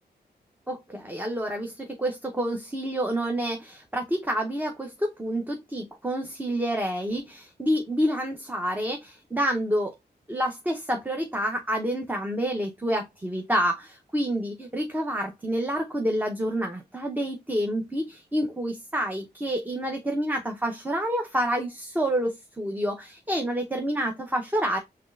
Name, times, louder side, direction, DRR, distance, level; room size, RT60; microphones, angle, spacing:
voice 1, 0.7-9.9 10.3-24.8, equal, 10° right, 0.7 m, -28 dB
5.9 x 3.2 x 2.4 m
wide cardioid pair, 130°, 17 cm